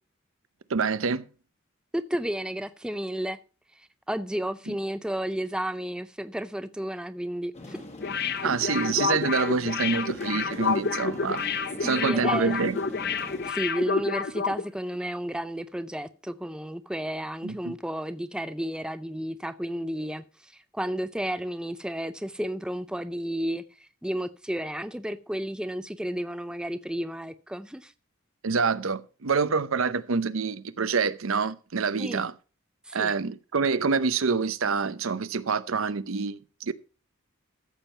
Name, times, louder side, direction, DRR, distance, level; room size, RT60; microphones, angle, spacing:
voice 1, 0.7-1.3 4.7-4.8 8.4-11.4 11.8-12.8 17.4-17.8 28.4-32.3 32.9-36.7, right 5 dB, 75° right, 0.7 m, -26 dB
voice 2, 1.9-3.4 4.1-7.8 11.8-12.6 13.5-23.6 24.0-27.9 32.0-32.2 32.9-33.1, equal, 5° right, 0.5 m, -32 dB
sound 1, 7.5-13.5, left 1 dB, 30° left, 1.8 m, -43 dB
sound 2, 8.0-14.6 14.9-15.0, left 5 dB, 50° left, 0.8 m, -29 dB
14.0 x 7.3 x 4.3 m
head